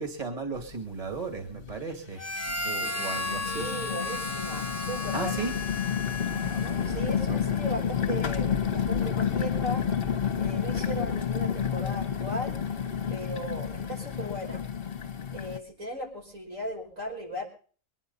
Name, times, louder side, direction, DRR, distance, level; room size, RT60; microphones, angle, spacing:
voice 1, 0.0-2.2 2.6-3.6 5.1-5.5 6.2-7.4, right 4 dB, 25° right, 6 dB, 2.5 m, -36 dB
sound 1, 0.6-0.7 1.1-1.8 2.4-15.6, left 8 dB, 45° left, 1.4 m, -30 dB
Harmonica, 2.2-7.2, left 2 dB, 15° left, 1.0 m, -34 dB
voice 2, 3.4-5.5 6.8-9.8 10.4-12.6 13.1-14.6 15.3-17.5, equal, 70° right, 0 dB, 5.9 m, -37 dB
23.5 x 10.5 x 5.6 m, 0.42 s
omnidirectional pair, 1.4 m